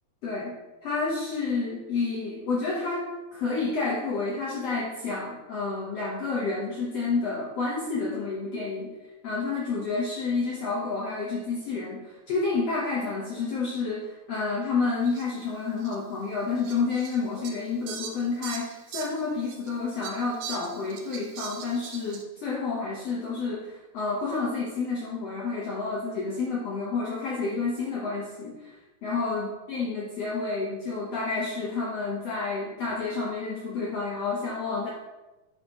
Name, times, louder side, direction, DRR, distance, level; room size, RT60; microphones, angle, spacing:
voice 1, 0.2-0.5 0.8-8.9 9.2-34.9, left 4 dB, 65° left, -5 dB, 1.6 m, -30 dB
Fowl, 15.1-15.2 15.8-16.0 16.6-19.7 20.0-22.2, right 7 dB, 75° right, 2.1 m, -40 dB
8.3 x 6.0 x 2.9 m, 1.1 s
omnidirectional pair, 4.1 m